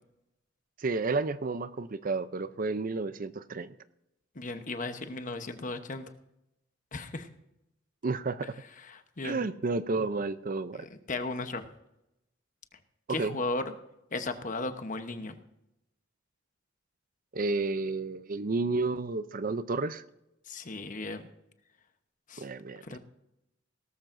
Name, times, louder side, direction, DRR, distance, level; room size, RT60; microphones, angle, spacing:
voice 1, 0.8-3.7 8.0-8.5 9.2-10.9 13.1-13.3 17.3-20.0 22.4-22.8, right 3 dB, 45° right, 14 dB, 0.5 m, -31 dB
voice 2, 4.3-6.1 6.9-7.3 8.8-9.4 10.7-11.6 13.1-13.7 14.1-15.4 20.5-21.3 22.3-22.5 22.8-23.0, left 2 dB, 45° left, 8 dB, 1.0 m, -36 dB
18.0 x 13.5 x 2.6 m, 0.88 s
head